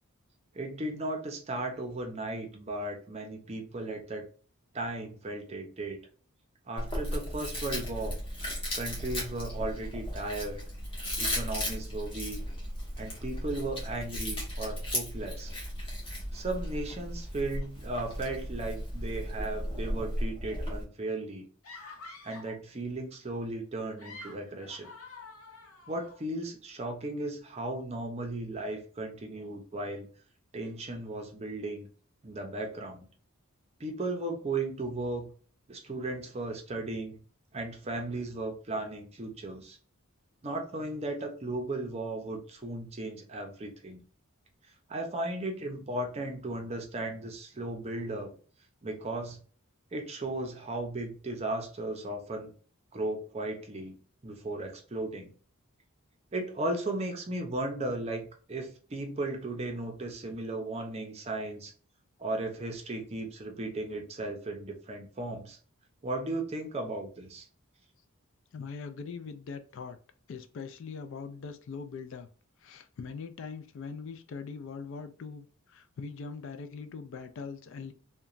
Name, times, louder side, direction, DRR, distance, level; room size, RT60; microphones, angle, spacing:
voice 1, 0.5-4.3 4.7-6.0 6.7-8.2 8.7-10.6 11.2-12.4 13.0-15.5 16.3-21.5 22.2-24.9 25.9-30.1 30.5-31.9 32.2-33.1 33.8-35.3 35.7-37.2 37.5-39.8 40.4-44.0 44.9-48.3 48.8-49.4 49.9-52.5 52.9-54.0 54.2-55.3 56.3-61.7 62.2-65.6 66.0-67.5, right 2 dB, 30° right, 3 dB, 0.5 m, -36 dB
Chewing mastication, 6.8-20.8, equal, 25° left, 1.0 m, -35 dB
sound 1, 21.6-22.6 23.8-26.2, left 3 dB, 90° left, 0.8 m, -48 dB
voice 2, 68.5-70.0 70.3-72.3 72.6-75.5 75.7-77.9, left 5 dB, 60° left, 9 dB, 0.3 m, -41 dB
2.9 x 2.2 x 2.4 m, 0.42 s
head